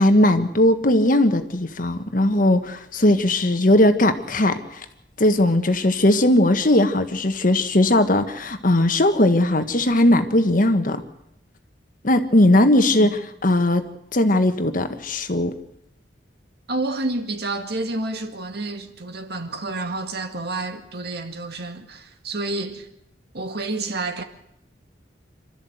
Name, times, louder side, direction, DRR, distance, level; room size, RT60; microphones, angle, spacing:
voice 1, 0.0-4.8 5.2-11.0 12.0-13.8 14.1-15.5, left 1 dB, 50° left, 1.5 m, -18 dB
voice 2, 16.7-22.9 23.3-24.2, right 2 dB, 65° right, 2.0 m, -29 dB
27.5 x 13.5 x 8.0 m
head